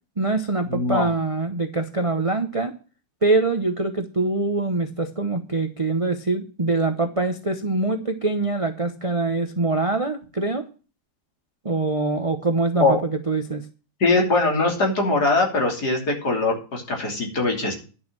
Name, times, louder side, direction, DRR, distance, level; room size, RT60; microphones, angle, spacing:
voice 1, 0.2-2.7 3.2-10.6 11.6-13.6, right 3 dB, 30° right, 7 dB, 0.6 m, -24 dB
voice 2, 0.7-1.1 12.8-13.0 14.0-17.7, left 3 dB, 55° left, 1 dB, 3.7 m, -21 dB
11.0 x 6.3 x 7.5 m, 0.35 s
omnidirectional pair, 2.0 m